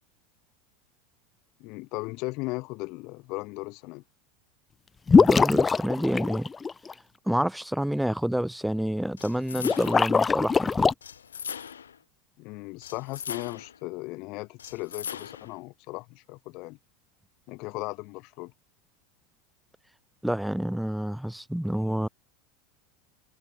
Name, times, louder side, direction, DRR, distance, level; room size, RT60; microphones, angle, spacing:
voice 1, 1.6-4.0 12.4-16.8 17.5-18.5, left 24 dB, 55° left, 3.9 m, -37 dB
sound 1, 5.1-6.9 9.6-10.9, left 5 dB, 20° left, 0.4 m, -22 dB
voice 2, 5.1-6.5 7.3-10.9 20.2-22.1, right 1 dB, ahead, 1.2 m, -28 dB
sound 2, 9.2-10.1 11.0-12.0 12.8-13.8 14.6-15.6, left 8 dB, 80° left, 4.3 m, -39 dB
hypercardioid pair, 85°, 0 cm